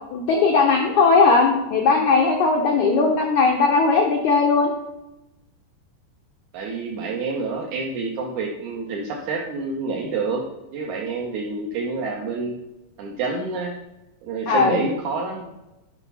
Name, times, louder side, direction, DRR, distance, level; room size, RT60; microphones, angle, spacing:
voice 1, 0.1-4.7 14.5-14.8, left 4 dB, 80° left, 2 dB, 1.7 m, -18 dB
voice 2, 6.5-12.6 13.0-13.7 14.2-15.5, right 3 dB, 80° right, 0 dB, 1.7 m, -28 dB
10.5 x 6.0 x 5.5 m, 0.99 s
omnidirectional pair, 5.0 m